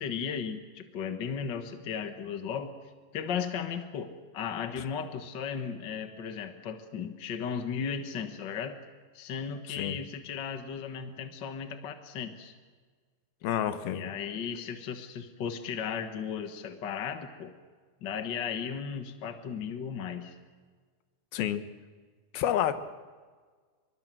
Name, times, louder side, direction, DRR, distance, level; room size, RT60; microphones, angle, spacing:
voice 1, 0.0-2.7 3.1-8.8 9.1-12.5 13.9-17.5 18.0-20.3, left 7 dB, 60° left, 7 dB, 1.1 m, -35 dB
voice 2, 9.7-10.0 13.4-14.1 21.3-21.6 22.3-22.8, left 10 dB, 80° left, 10 dB, 3.0 m, -29 dB
25.5 x 23.5 x 7.6 m, 1.5 s
omnidirectional pair, 4.3 m